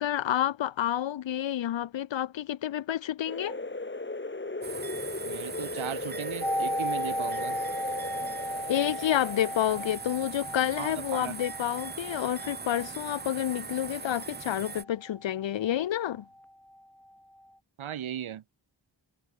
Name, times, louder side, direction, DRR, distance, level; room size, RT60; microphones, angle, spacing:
voice 1, 0.0-3.6 8.7-16.2, left 11 dB, 70° left, 0.5 m, -29 dB
sound 1, 3.3-9.9, left 3 dB, 25° left, 1.3 m, -37 dB
sound 2, 4.6-14.8, right 5 dB, 25° right, 0.4 m, -41 dB
voice 2, 5.2-7.6 10.8-11.4 17.8-18.4, right 10 dB, 90° right, 0.7 m, -37 dB
sound 3, 6.4-16.2 16.4-16.5, equal, 5° left, 0.8 m, -36 dB
wide cardioid pair, 45°, 47 cm